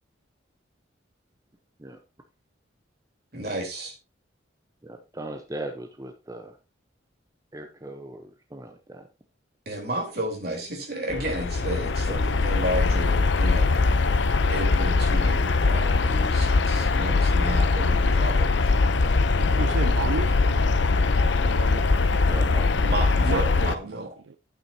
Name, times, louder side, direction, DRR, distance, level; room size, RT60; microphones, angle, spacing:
voice 1, 3.3-4.0 9.7-14.0 14.4-18.7 19.4-19.7 22.8-24.1, right 1 dB, 55° right, 3.7 m, -32 dB
voice 2, 4.8-6.6 7.5-9.1 17.4-17.6 19.6-19.8 22.3-22.9, right 1 dB, 20° right, 0.8 m, -38 dB
sound 1, 11.1-23.7, left 3 dB, 70° left, 0.7 m, -22 dB
voice 3, 19.4-20.3 21.4-22.2 23.2-24.4, right 4 dB, 85° right, 0.6 m, -33 dB
11.0 x 9.1 x 2.8 m
head